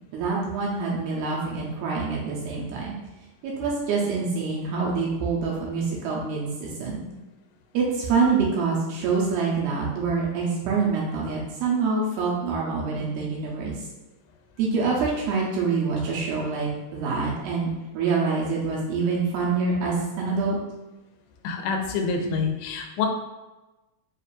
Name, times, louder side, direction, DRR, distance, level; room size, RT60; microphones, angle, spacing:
voice 1, 0.1-2.9 3.4-7.0 7.7-13.8 14.6-17.7 17.9-20.6, right 4 dB, 80° right, -3 dB, 2.3 m, -26 dB
voice 2, 21.4-23.1, left 5 dB, 85° left, 3 dB, 2.5 m, -26 dB
6.9 x 2.4 x 2.4 m, 1.1 s
omnidirectional pair, 4.8 m